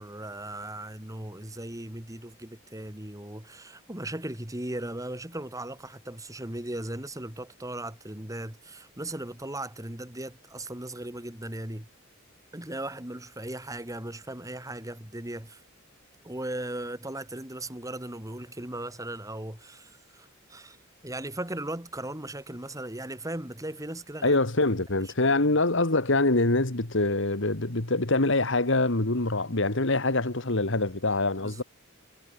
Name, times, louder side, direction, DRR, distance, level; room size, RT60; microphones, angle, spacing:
voice 1, 0.0-11.9 12.5-15.6 16.2-20.8 21.0-24.4 25.0-25.6 31.4-31.6, right 1 dB, 15° right, 2.8 m, -37 dB
voice 2, 24.2-31.6, left 2 dB, 65° left, 2.2 m, -25 dB
head